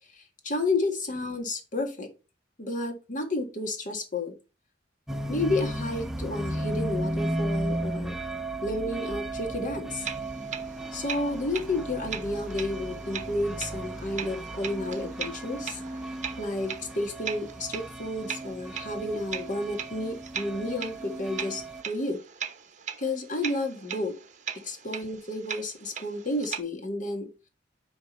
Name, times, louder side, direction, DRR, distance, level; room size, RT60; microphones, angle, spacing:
voice 1, 0.1-2.1 2.6-4.4 5.3-8.2 8.6-10.1 10.9-15.8 16.4-22.2 23.0-24.2 24.6-27.3, left 2 dB, 45° left, 1.8 m, -31 dB
sound 1, 5.1-21.8, right 1 dB, ahead, 0.6 m, -35 dB
sound 2, 10.0-26.6, right 7 dB, 40° right, 0.9 m, -40 dB
9.8 x 3.5 x 5.5 m
head